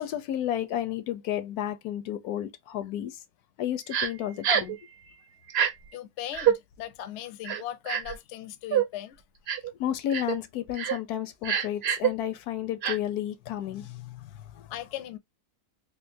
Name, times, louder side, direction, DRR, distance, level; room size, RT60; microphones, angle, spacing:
voice 1, 0.0-3.2 3.6-4.8 9.8-14.7, left 11 dB, 80° left, 1.1 m, -32 dB
Crying sobbing, 3.9-4.1 4.4-4.8 5.5-5.7 6.3-6.6 7.4-8.2 8.7-8.9 9.5-9.7 10.1-10.4 10.7-11.0 11.4-12.1 12.8-13.0, right 9 dB, 55° right, 0.8 m, -25 dB
voice 2, 5.9-9.2 14.7-15.2, left 12 dB, 65° left, 0.7 m, -38 dB
3.7 x 2.5 x 2.6 m
omnidirectional pair, 1.6 m